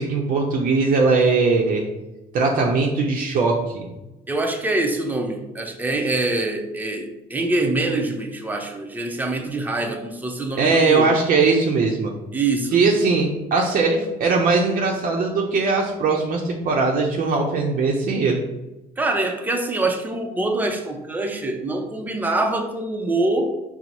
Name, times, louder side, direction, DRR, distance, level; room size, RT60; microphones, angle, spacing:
voice 1, 0.0-1.8 2.3-3.9 10.6-12.1 12.7-18.4, right 4 dB, 55° right, 0 dB, 0.5 m, -20 dB
voice 2, 4.3-11.1 12.3-12.8 19.0-23.5, right 2 dB, 10° right, 3 dB, 0.5 m, -24 dB
4.5 x 2.0 x 4.0 m, 1.0 s
cardioid pair, 110°, 17 cm